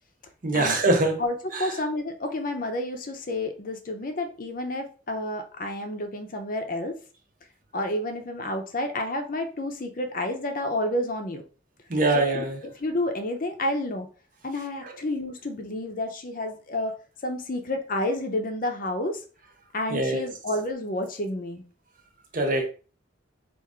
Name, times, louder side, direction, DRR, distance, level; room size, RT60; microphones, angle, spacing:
voice 1, 0.4-1.2 1.5-1.7 11.9-12.6 14.8-14.9 19.9-20.2 22.3-22.7, right 2 dB, 40° right, 0.8 m, -23 dB
voice 2, 1.6-6.9 7.7-11.4 12.3-14.1 14.4-16.9 17.2-19.2 19.7-21.6, left 1 dB, 45° left, 0.6 m, -30 dB
4.4 x 2.5 x 3.6 m
head